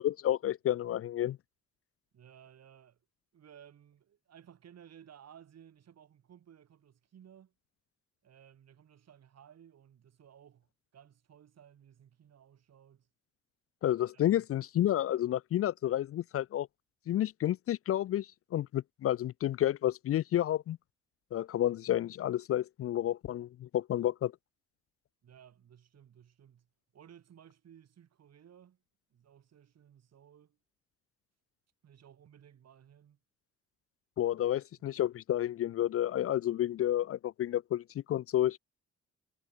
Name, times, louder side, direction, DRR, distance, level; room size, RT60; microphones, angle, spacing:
voice 1, 0.0-1.4 13.8-16.7 17.1-20.8 21.3-24.3 34.2-38.6, left 12 dB, 50° left, 0.4 m, -30 dB
voice 2, 2.1-3.0 3.3-7.5 8.2-13.1 14.1-14.5 25.2-26.7 26.9-28.8 29.1-30.6 31.8-33.2 34.8-34.9, right 9 dB, 60° right, 3.4 m, -58 dB
cardioid pair, 90°, 30 cm